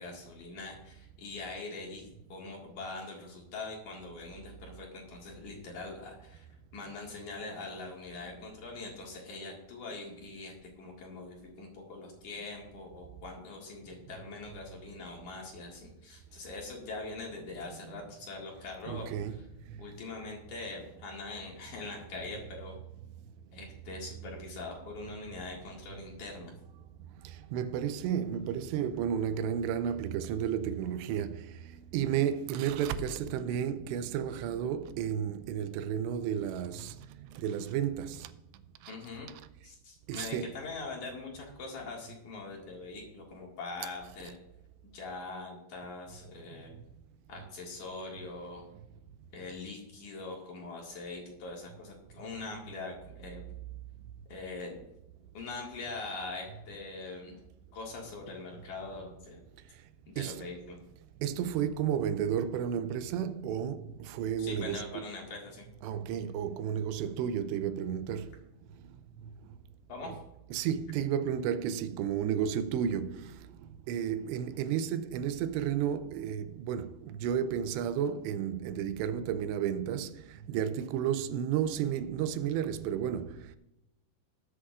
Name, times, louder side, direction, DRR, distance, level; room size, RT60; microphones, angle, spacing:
voice 1, 0.0-6.5 6.7-19.1 19.8-22.8 23.5-26.5 38.9-39.3 39.6-44.3 44.9-46.7 47.3-48.7 49.3-53.4 54.3-54.7 55.3-57.3 57.7-59.4 60.1-60.8 64.4-65.7 69.9-70.2, left 3 dB, 55° left, 2.9 m, -42 dB
voice 2, 18.9-19.8 27.2-38.3 38.8-38.9 40.1-40.6 60.2-60.5 61.2-65.1 65.8-68.3 70.1-70.2 70.5-73.4 73.9-83.6, right 9 dB, 85° right, 2.8 m, -32 dB
20.5 x 7.9 x 2.5 m
omnidirectional pair, 4.9 m